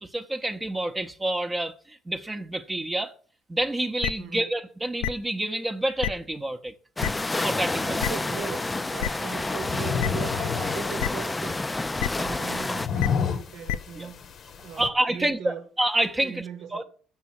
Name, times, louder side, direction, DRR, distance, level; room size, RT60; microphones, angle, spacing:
voice 1, 0.0-3.1 3.5-6.7 7.4-8.0 14.0-14.1 14.8-16.4 16.7-16.8, right 1 dB, 20° right, 0.7 m, -28 dB
sound 1, 4.0-4.1 5.0-5.1 6.0-6.1 7.0-7.1 8.0-8.1 9.0-9.1 10.0-10.1 11.0-11.1 12.0-12.1 13.0-13.1 13.7-13.8, left 10 dB, 90° left, 0.4 m, -26 dB
sound 2, 7.0-12.9, left 2 dB, 15° left, 0.4 m, -29 dB
sound 3, 7.7-14.9, left 7 dB, 55° left, 0.8 m, -33 dB
voice 2, 7.7-11.6 12.1-14.2 14.6-15.7 16.2-16.8, right 7 dB, 75° right, 1.1 m, -39 dB
7.2 x 6.0 x 5.7 m
supercardioid pair, 75°, 0 cm